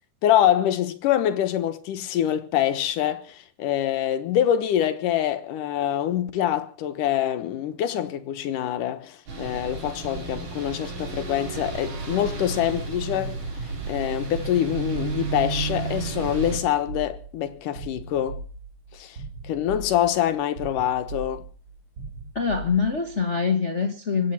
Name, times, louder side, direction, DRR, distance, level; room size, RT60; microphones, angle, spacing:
voice 1, 0.2-13.4 13.9-18.4 18.9-19.2 19.4-21.4, left 11 dB, 85° left, 2.8 m, -25 dB
sound 1, 9.3-16.6, right 4 dB, 85° right, 5.3 m, -32 dB
sound 2, 16.4-23.2, right 3 dB, 45° right, 3.1 m, -39 dB
voice 2, 22.3-24.3, left 5 dB, 65° left, 0.7 m, -24 dB
24.5 x 9.2 x 5.8 m
omnidirectional pair, 3.6 m